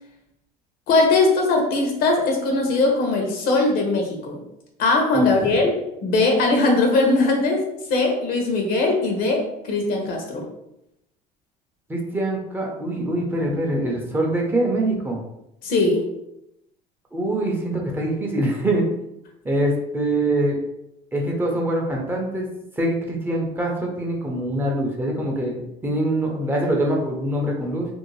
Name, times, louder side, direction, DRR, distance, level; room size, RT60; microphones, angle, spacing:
voice 1, 0.9-4.4 4.8-10.4 15.6-16.1, left 3 dB, 60° left, 2 dB, 0.7 m, -20 dB
voice 2, 5.1-5.6 11.9-15.2 17.1-18.9 19.4-20.6 21.1-22.5 22.8-27.9, right 1 dB, 10° right, -1 dB, 0.5 m, -24 dB
2.6 x 2.0 x 3.0 m, 0.85 s
supercardioid pair, 115°, 17 cm